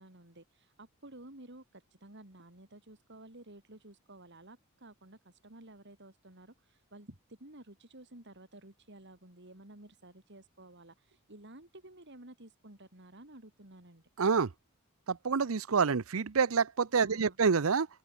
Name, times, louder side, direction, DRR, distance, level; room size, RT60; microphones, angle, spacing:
voice 1, 0.0-14.0 17.0-17.4, right 1 dB, 55° right, 4.0 m, -53 dB
voice 2, 14.2-14.5 15.1-17.9, right 5 dB, 70° right, 0.7 m, -27 dB
open air
head